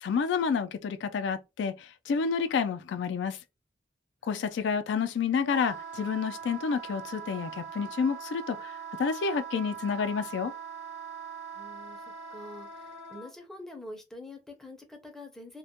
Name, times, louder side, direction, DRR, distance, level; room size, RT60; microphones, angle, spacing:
voice 1, 0.0-3.4 4.2-8.7 9.0-10.5, left 6 dB, 80° left, 0.3 m, -29 dB
voice 2, 4.3-4.6 11.5-12.0 12.3-15.6, left 1 dB, 5° left, 0.5 m, -46 dB
Wind instrument woodwind instrument, 5.4-13.3, right 6 dB, 80° right, 0.9 m, -42 dB
2.2 x 2.1 x 2.8 m
head